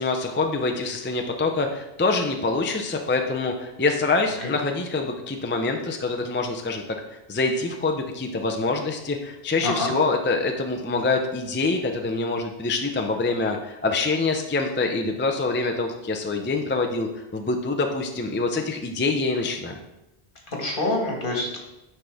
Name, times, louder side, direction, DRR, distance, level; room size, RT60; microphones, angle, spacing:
voice 1, 0.0-6.8 7.3-19.8, left 3 dB, 20° left, 3 dB, 0.3 m, -25 dB
voice 2, 9.6-9.9 20.5-21.6, left 2 dB, 55° left, -1 dB, 1.6 m, -26 dB
9.5 x 4.1 x 3.4 m, 0.93 s
omnidirectional pair, 1.1 m